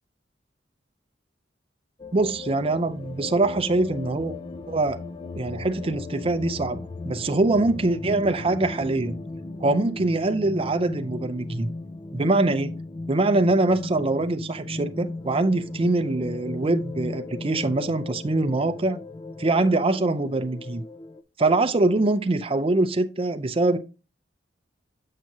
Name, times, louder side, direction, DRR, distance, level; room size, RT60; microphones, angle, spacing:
sound 1, 2.0-21.2, left 2 dB, 25° left, 0.4 m, -37 dB
voice 1, 2.1-4.3 4.7-5.0 5.4-9.2 9.6-11.7 12.1-12.7 13.1-19.0 19.4-20.8 21.4-23.8, right 2 dB, 30° right, 0.5 m, -23 dB
7.5 x 5.9 x 2.7 m
head